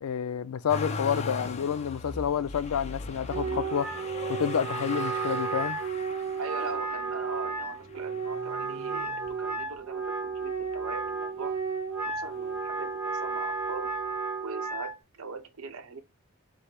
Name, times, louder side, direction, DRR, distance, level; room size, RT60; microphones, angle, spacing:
voice 1, 0.0-3.9 4.3-5.8, left 8 dB, 85° left, 0.4 m, -29 dB
Motor vehicle (road), 0.7-9.8 10.4-11.2 11.5-12.6 13.6-13.7, left 4 dB, 30° left, 0.5 m, -39 dB
Wind instrument woodwind instrument, 3.3-14.9, right 5 dB, 10° right, 1.2 m, -33 dB
voice 2, 6.4-11.6 12.0-14.0 14.4-16.0, right 4 dB, 75° right, 0.7 m, -41 dB
5.1 x 2.0 x 4.2 m
head